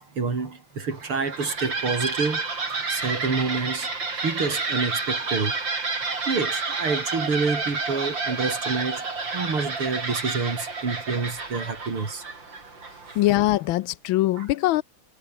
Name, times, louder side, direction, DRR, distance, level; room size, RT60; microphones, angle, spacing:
voice 1, 0.0-2.4 2.9-3.9 4.2-5.6 6.3-12.2 14.3-14.5, right 4 dB, 80° right, 4.9 m, -28 dB
sound 1, 0.9-13.5, right 4 dB, 60° right, 4.9 m, -30 dB
voice 2, 13.2-14.8, left 16 dB, 75° left, 1.3 m, -22 dB
omnidirectional pair, 2.4 m